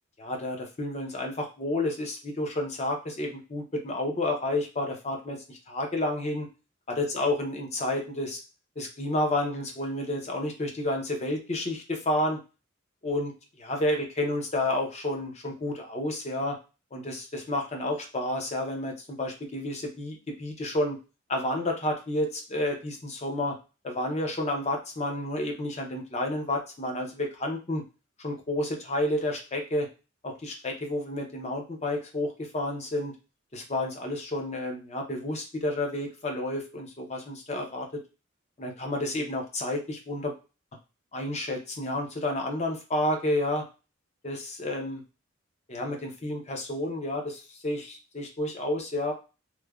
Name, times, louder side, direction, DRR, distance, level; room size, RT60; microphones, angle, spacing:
voice 1, 0.2-6.5 6.9-8.4 8.8-12.4 13.0-13.3 13.6-16.6 16.9-21.0 21.3-23.6 23.8-27.8 28.2-29.9 30.2-33.1 33.5-37.9 38.6-40.3 41.1-43.6 44.2-45.0 45.7-49.1, left 1 dB, 30° left, 2 dB, 0.5 m, -30 dB
3.1 x 2.1 x 2.3 m, 0.30 s
head